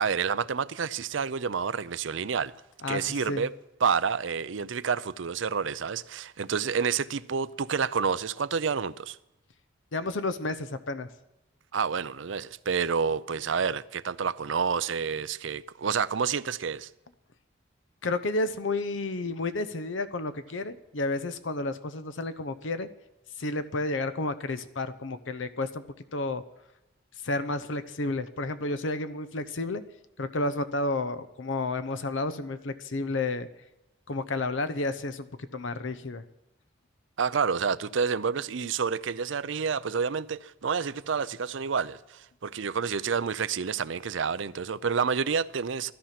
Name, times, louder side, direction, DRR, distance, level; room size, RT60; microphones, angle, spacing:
voice 1, 0.0-2.5 2.9-3.5 3.8-9.2 11.7-16.9 37.2-45.9, right 6 dB, 70° right, 0.5 m, -29 dB
voice 2, 2.8-3.5 9.9-11.1 18.0-22.9 23.4-25.8 26.1-26.4 27.2-29.8 30.2-33.5 34.1-35.3 35.5-36.2, left 2 dB, 70° left, 0.8 m, -31 dB
16.5 x 13.5 x 5.9 m
head